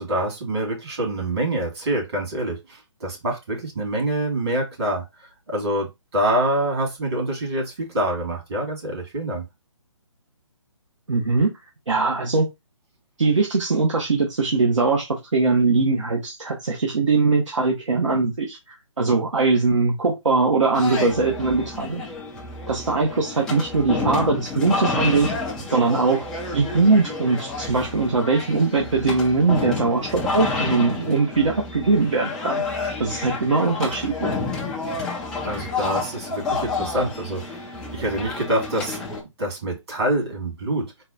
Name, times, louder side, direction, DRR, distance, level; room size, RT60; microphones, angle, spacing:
voice 1, 0.0-9.4 35.4-37.6 37.9-39.1 39.4-41.0, right 1 dB, 55° right, 0 dB, 2.5 m, -26 dB
voice 2, 11.1-11.5 11.9-12.5 13.2-18.6 19.0-22.0 22.7-25.3 25.7-26.2 26.5-32.6 33.0-34.3, right 3 dB, 70° right, 1 dB, 1.0 m, -21 dB
sound 1, 20.7-39.2, left 3 dB, 5° left, 0.4 m, -30 dB
4.0 x 2.3 x 4.0 m, 0.21 s
figure-of-eight pair, 140°, 16 cm